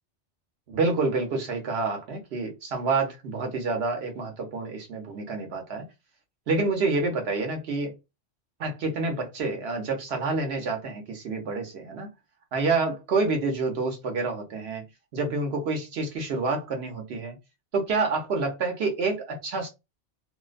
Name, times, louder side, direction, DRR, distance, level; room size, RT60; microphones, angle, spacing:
voice 1, 0.7-5.9 6.5-7.9 8.6-12.1 12.5-14.8 15.1-17.4 17.7-19.7, right 3 dB, 65° right, 1.0 m, -28 dB
2.6 x 2.1 x 2.4 m
omnidirectional pair, 1.2 m